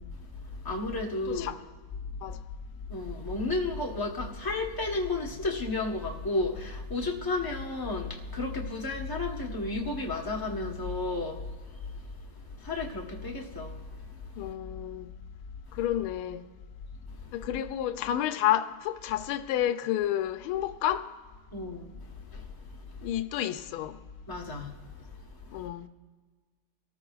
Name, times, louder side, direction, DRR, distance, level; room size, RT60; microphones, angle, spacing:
voice 1, 0.0-1.5 2.9-14.4 15.7-15.8 17.2-17.5 21.5-22.0 22.3-23.1 24.3-25.7, left 2 dB, 20° left, 0.6 m, -33 dB
voice 2, 14.4-15.1 15.7-16.5 17.3-21.1 23.0-24.0 25.5-25.9, left 12 dB, 75° left, 1.4 m, -30 dB
24.5 x 14.0 x 2.4 m
omnidirectional pair, 2.4 m